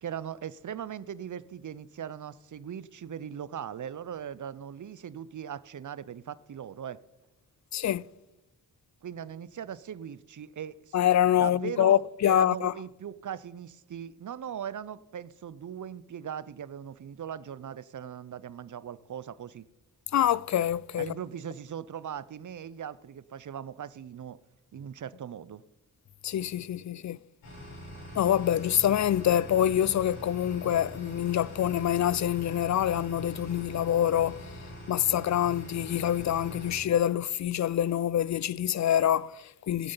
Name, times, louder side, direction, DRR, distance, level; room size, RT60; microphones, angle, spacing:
voice 1, 0.0-7.0 9.0-10.9 11.2-19.7 21.0-24.4 24.7-25.6, right 9 dB, 45° right, 0.7 m, -39 dB
voice 2, 7.7-8.0 10.9-12.7 20.1-21.1 26.2-27.2 28.1-34.5 34.9-39.9, left 11 dB, 45° left, 0.4 m, -26 dB
sound 1, 27.4-36.8, equal, 90° left, 5.4 m, -43 dB
16.5 x 8.6 x 3.9 m
supercardioid pair, 40°, 41 cm